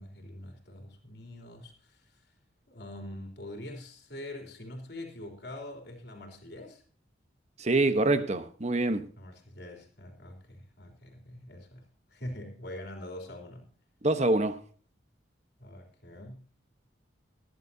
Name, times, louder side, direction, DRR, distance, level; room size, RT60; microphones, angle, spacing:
voice 1, 0.0-2.3 2.7-6.8 9.2-13.7 15.6-16.4, left 1 dB, 55° left, 3.4 m, -44 dB
voice 2, 7.6-9.1 14.0-14.6, right 2 dB, 35° right, 1.1 m, -25 dB
19.5 x 11.0 x 2.8 m
head